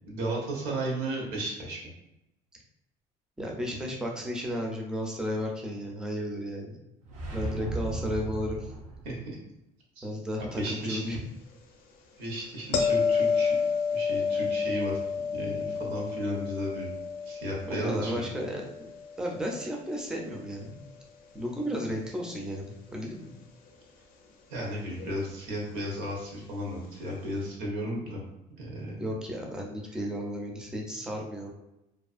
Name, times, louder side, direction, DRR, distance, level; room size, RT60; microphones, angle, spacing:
voice 1, 0.0-1.9 9.0-9.4 10.0-10.1 10.6-11.2 12.2-13.5 13.9-15.0 15.3-16.9 17.3-18.3 24.5-28.2 28.6-29.0, right 1 dB, 85° right, -2 dB, 0.9 m, -34 dB
voice 2, 3.4-6.8 7.3-8.7 10.0-11.2 17.7-18.9 19.2-20.8 21.3-23.4 29.0-31.5, equal, 5° right, 0 dB, 0.4 m, -34 dB
sound 1, 7.0-9.3, right 2 dB, 50° right, 0.6 m, -35 dB
sound 2, 12.7-19.7 25.0-25.2, left 5 dB, 60° left, 0.4 m, -30 dB
2.4 x 2.4 x 2.4 m, 0.89 s
cardioid pair, 155°, 16 cm